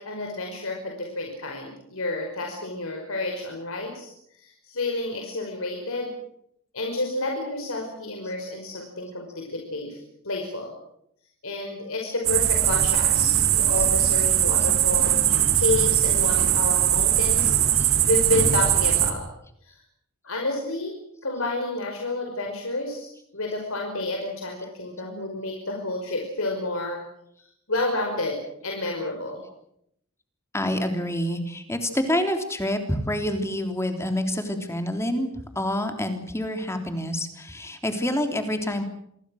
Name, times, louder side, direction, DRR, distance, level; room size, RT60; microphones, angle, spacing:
voice 1, 0.0-6.1 6.7-10.7 11.4-15.2 15.5-19.3 19.6-19.8 20.2-21.0 21.2-27.0 27.7-28.4 28.6-29.4, left 2 dB, 65° left, 1 dB, 5.5 m, -30 dB
sound 1, 12.2-19.1, right 10 dB, 65° right, 3.6 m, -20 dB
voice 2, 30.5-35.3 35.6-38.8, left 1 dB, 10° left, 6 dB, 3.4 m, -27 dB
28.0 x 22.5 x 6.5 m, 0.73 s
head